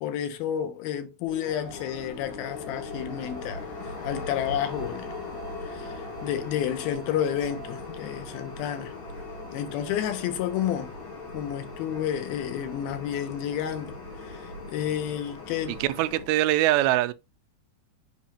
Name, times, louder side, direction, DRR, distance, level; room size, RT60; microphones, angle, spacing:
voice 1, 0.0-3.7 4.0-5.1 5.7-5.9 6.2-8.9 9.5-10.9 11.3-14.0 14.7-15.8, left 10 dB, 90° left, 2.7 m, -30 dB
sound 1, 1.3-16.3, left 3 dB, 40° left, 2.7 m, -39 dB
voice 2, 15.7-17.1, right 15 dB, 85° right, 2.4 m, -23 dB
8.2 x 5.0 x 2.8 m
omnidirectional pair, 4.3 m